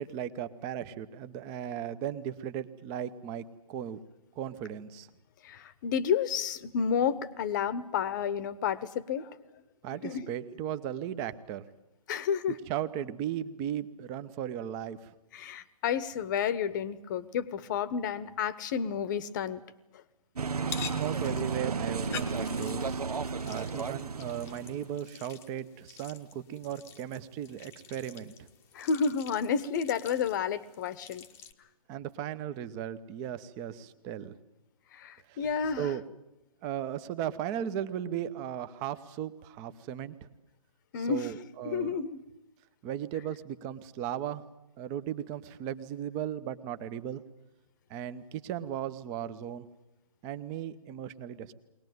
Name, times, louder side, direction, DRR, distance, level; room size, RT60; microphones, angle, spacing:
voice 1, 0.0-4.0 4.4-5.1 9.8-11.6 12.7-15.1 20.8-23.0 23.4-28.5 31.9-34.3 35.3-35.4 35.8-36.0 36.6-40.3 41.0-42.0 42.8-44.4 44.8-47.2 47.9-49.7 50.2-51.5, right 10 dB, 20° right, 13 dB, 0.8 m, -36 dB
voice 2, 5.4-9.4 10.0-10.3 12.1-12.6 15.3-19.6 19.9-20.0 28.7-31.2 34.9-35.9 40.9-41.3 41.6-42.2, left 7 dB, 30° left, 16 dB, 1.0 m, -31 dB
sound 1, 20.4-25.0, right 4 dB, 80° right, 0.9 m, -33 dB
Mixing pasta, 20.6-31.5, left 8 dB, 15° left, 1.0 m, -47 dB
22.0 x 19.0 x 9.4 m, 0.95 s
hypercardioid pair, 145°, 19 cm